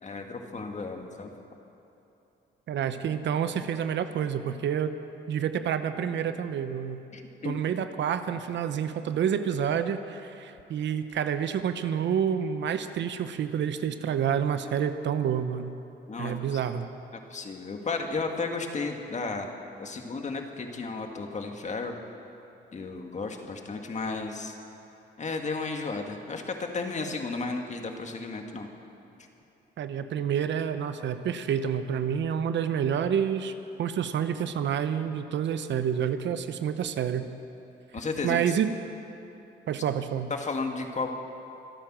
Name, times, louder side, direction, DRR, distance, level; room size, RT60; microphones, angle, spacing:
voice 1, 0.0-1.3 7.1-7.5 16.1-16.6 17.1-19.5 19.8-22.0 22.7-24.5 25.2-28.7 37.9-38.4 40.3-41.1, left 3 dB, 35° left, 4 dB, 1.9 m, -33 dB
voice 2, 2.7-4.9 5.3-7.0 7.4-15.8 16.2-16.9 29.8-33.5 33.8-37.3 38.2-38.7 39.7-40.3, right 8 dB, 65° right, 10 dB, 0.9 m, -28 dB
26.0 x 9.1 x 6.2 m, 2.9 s
cardioid pair, 90°, 20 cm